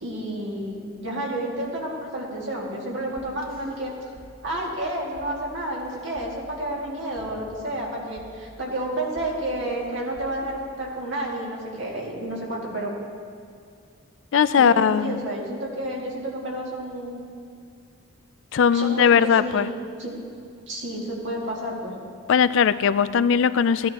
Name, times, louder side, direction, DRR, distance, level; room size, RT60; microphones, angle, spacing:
voice 1, 0.0-3.9 4.4-13.0 14.6-17.2 18.7-19.7 20.0-20.1 20.7-21.9, right 1 dB, 60° right, -3 dB, 2.2 m, -30 dB
sound 1, 3.2-4.3 4.5-4.8 5.2-5.3 5.8-6.8 7.2-11.2, equal, 45° left, 1.2 m, -47 dB
voice 2, 14.3-15.2 18.5-19.7 22.3-23.9, left 7 dB, 65° left, 14 dB, 0.3 m, -19 dB
16.0 x 10.5 x 2.9 m, 2.4 s
head